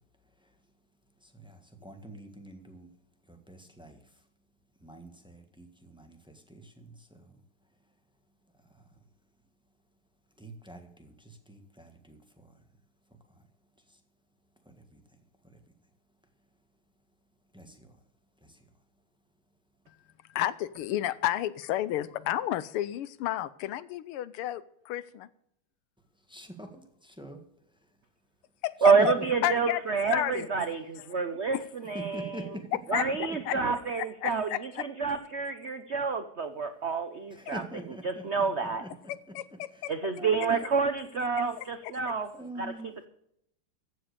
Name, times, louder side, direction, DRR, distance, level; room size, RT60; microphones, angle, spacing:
voice 1, 1.3-2.9 3.3-4.0 4.8-7.2 10.4-12.5 14.7-15.0 17.5-17.9 18.4-18.6 26.3-27.4 29.0-29.2 31.9-32.7 37.3-38.3 38.6-38.9 39.3-39.4 40.2-40.6 42.3-42.9, right 1 dB, 5° right, 6 dB, 1.2 m, -44 dB
voice 2, 20.3-25.3 28.6-28.7 29.1-29.2 29.4-29.8 30.1-30.5 31.5-31.6 32.9-33.0 33.5-33.6 34.0-34.6 39.3-39.9 41.6-41.9, left 13 dB, 80° left, 17 dB, 1.6 m, -31 dB
voice 3, 28.8-32.6 32.9-38.9 39.9-42.3 42.6-42.7, right 5 dB, 60° right, 9 dB, 0.7 m, -28 dB
14.5 x 7.7 x 6.7 m, 0.73 s
omnidirectional pair, 2.4 m